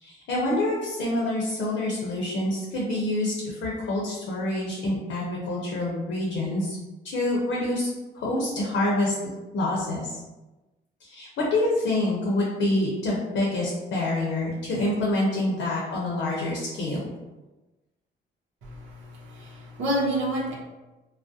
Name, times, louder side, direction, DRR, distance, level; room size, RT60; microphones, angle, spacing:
voice 1, 0.0-6.8 7.0-7.9 8.1-9.1 9.5-10.1 11.0-17.1, left 1 dB, 70° left, -3 dB, 0.6 m, -27 dB
voice 2, 18.6-20.5, right 1 dB, 85° right, -2 dB, 0.6 m, -29 dB
2.3 x 2.0 x 2.6 m, 1.1 s
cardioid pair, 90°, 20 cm